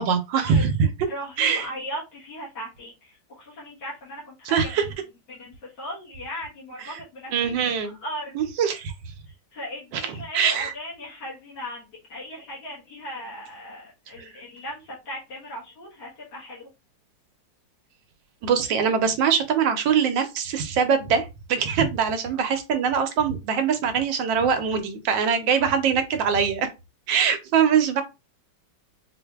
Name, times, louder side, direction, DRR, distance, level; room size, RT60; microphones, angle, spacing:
voice 1, 0.0-1.1 1.4-1.7 4.4-4.9 6.8-7.0 7.3-8.0 8.3-8.9 9.9-10.7 14.2-14.3 18.4-26.7 27.1-28.0, right 7 dB, 85° right, 1.4 m, -23 dB
voice 2, 1.1-2.9 3.3-4.6 5.3-7.3 7.6-7.7 8.0-8.3 9.5-16.7, equal, 70° left, 1.9 m, -37 dB
4.5 x 2.6 x 2.3 m
omnidirectional pair, 2.0 m